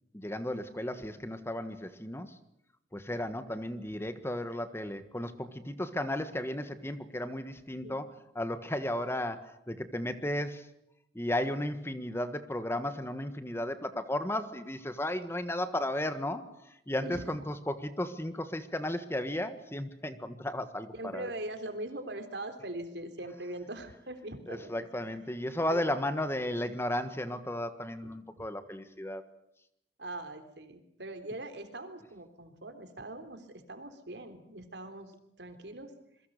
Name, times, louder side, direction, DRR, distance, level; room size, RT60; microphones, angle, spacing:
voice 1, 0.1-2.4 2.9-8.1 8.3-10.7 11.1-21.3 24.5-29.2, left 1 dB, 15° left, 10 dB, 1.5 m, -34 dB
voice 2, 17.0-17.4 20.9-25.1 25.7-25.9 28.0-28.5 30.0-35.9, right 1 dB, 75° right, 8 dB, 3.7 m, -42 dB
27.5 x 22.5 x 6.7 m, 0.77 s
head